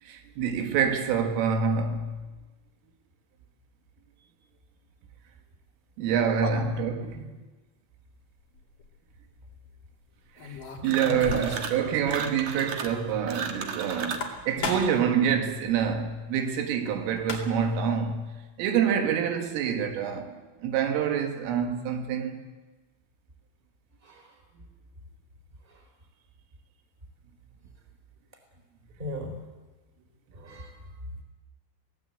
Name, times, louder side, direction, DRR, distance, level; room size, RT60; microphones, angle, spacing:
voice 1, 0.0-2.3 6.0-7.4 10.4-22.4, right 7 dB, 85° right, 4.4 m, -27 dB
sound 1, 8.5-8.9 10.4-11.8 12.1-12.2 12.5-12.6 14.0-15.1 16.9-17.0 17.2-17.8, left 3 dB, 50° left, 3.8 m, -35 dB
voice 2, 10.8-11.4 24.0-24.2 29.0-29.4 30.4-30.7, equal, 10° right, 3.8 m, -35 dB
sound 2, 10.8-11.8 12.1-14.3, right 6 dB, 60° right, 2.0 m, -35 dB
22.5 x 17.5 x 8.3 m
omnidirectional pair, 5.7 m